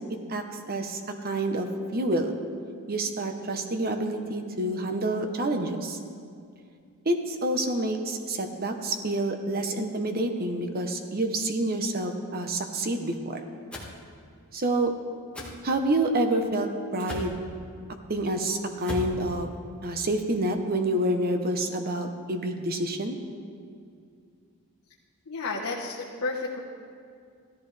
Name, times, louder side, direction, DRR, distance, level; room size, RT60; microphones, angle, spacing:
voice 1, 0.3-2.3 2.9-6.0 7.0-13.4 14.5-14.9 15.6-17.4 18.1-19.5 19.8-23.2, right 1 dB, 45° right, 5 dB, 1.0 m, -28 dB
sound 1, 13.7-13.9 15.3-15.5 17.0-17.4 18.8-19.2, left 1 dB, 5° left, 1.6 m, -35 dB
voice 2, 25.3-26.6, left 3 dB, 75° left, -5 dB, 1.2 m, -31 dB
16.0 x 13.5 x 3.4 m, 2.3 s
head